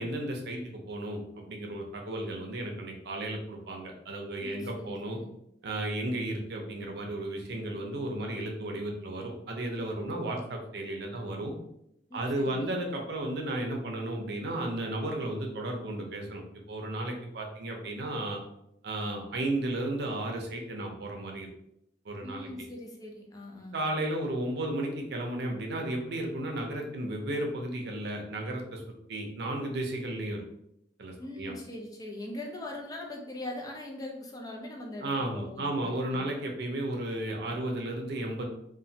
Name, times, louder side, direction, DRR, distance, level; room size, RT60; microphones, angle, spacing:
voice 1, 0.0-5.2 5.6-11.5 12.1-18.4 18.8-21.5 22.1-22.5 23.7-28.8 29.1-30.4 31.0-31.5 35.0-38.4, right 1 dB, 65° right, 1 dB, 0.6 m, -34 dB
voice 2, 4.4-5.3 12.1-12.7 22.2-23.8 31.2-36.3, left 1 dB, 20° left, 0 dB, 0.5 m, -41 dB
3.0 x 2.2 x 2.7 m, 0.79 s
head